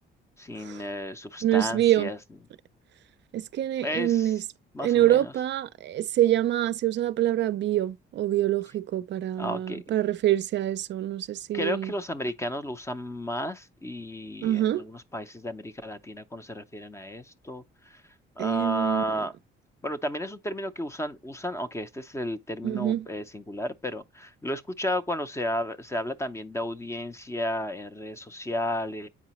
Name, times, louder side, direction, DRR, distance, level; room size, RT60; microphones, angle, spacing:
voice 1, 0.4-2.2 3.8-4.3 4.7-5.3 9.4-9.8 11.5-18.0 18.4-19.3 19.8-29.1, left 1 dB, 15° left, 0.5 m, -33 dB
voice 2, 1.4-2.1 3.3-4.4 4.8-11.9 14.4-14.8 18.4-19.0 22.6-23.1, right 13 dB, 60° right, 0.4 m, -25 dB
8.3 x 4.8 x 2.9 m
cardioid pair, 115°, 21 cm